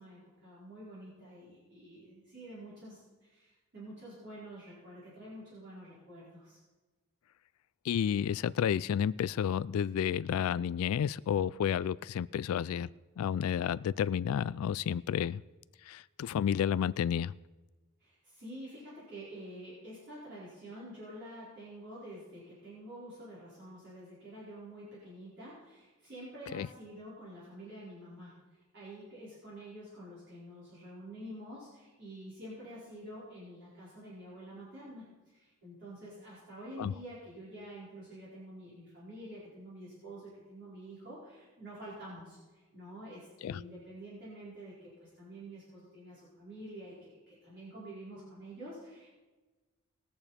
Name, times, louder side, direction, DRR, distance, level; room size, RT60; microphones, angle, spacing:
voice 1, 0.0-6.6 18.0-28.4 28.7-49.1, right 1 dB, 55° right, -9 dB, 4.6 m, -48 dB
voice 2, 7.8-12.9 13.2-15.4 15.9-17.3 26.5-26.7 36.8-36.9 43.4-43.6, left 8 dB, 75° left, 17 dB, 0.3 m, -31 dB
20.5 x 6.9 x 4.3 m, 1.2 s
head